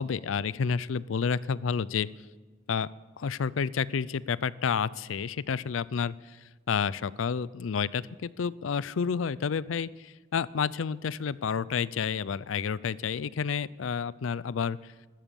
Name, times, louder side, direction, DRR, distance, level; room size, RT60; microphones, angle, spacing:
voice 1, 0.0-2.1 2.7-2.9 3.2-6.1 6.7-14.8, left 6 dB, 85° left, 20 dB, 0.4 m, -30 dB
14.5 x 13.5 x 7.0 m, 1.3 s
head